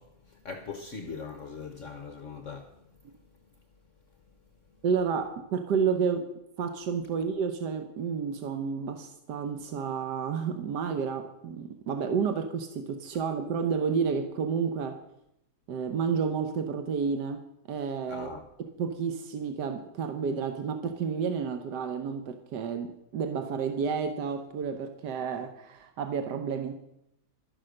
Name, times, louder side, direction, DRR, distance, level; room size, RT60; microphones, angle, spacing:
voice 1, 0.0-2.9 4.7-4.8 18.1-18.5, left 5 dB, 55° left, 1.2 m, -41 dB
voice 2, 4.8-6.3 6.6-15.0 15.7-18.3 18.8-26.7, right 6 dB, 90° right, 1.5 m, -30 dB
12.5 x 10.0 x 6.4 m
omnidirectional pair, 1.7 m